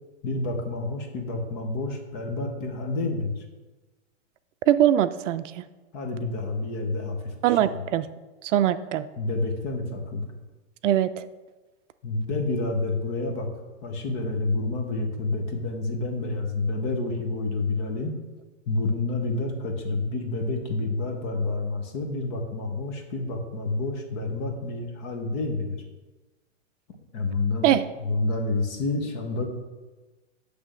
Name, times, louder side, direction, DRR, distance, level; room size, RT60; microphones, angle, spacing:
voice 1, 0.2-3.4 5.9-7.8 9.2-10.3 12.0-13.5 13.8-18.1 18.7-25.8 27.1-29.5, left 2 dB, 20° left, 3 dB, 0.6 m, -29 dB
voice 2, 4.7-5.6 7.4-8.1 8.5-9.1 10.8-11.2 27.6-27.9, right 11 dB, 70° right, 13 dB, 0.5 m, -22 dB
8.5 x 3.3 x 6.0 m, 1.2 s
supercardioid pair, 165°, 38 cm